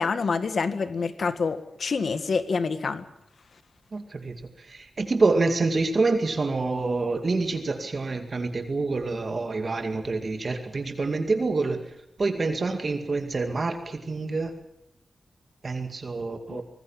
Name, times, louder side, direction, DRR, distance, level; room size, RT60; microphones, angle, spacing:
voice 1, 0.0-3.1 16.5-16.6, left 4 dB, 60° left, 11 dB, 1.7 m, -27 dB
voice 2, 3.9-11.9 12.2-14.5 15.6-16.6, right 3 dB, 40° right, 6 dB, 2.2 m, -27 dB
25.0 x 19.5 x 7.3 m, 0.81 s
wide cardioid pair, 125°, 0 cm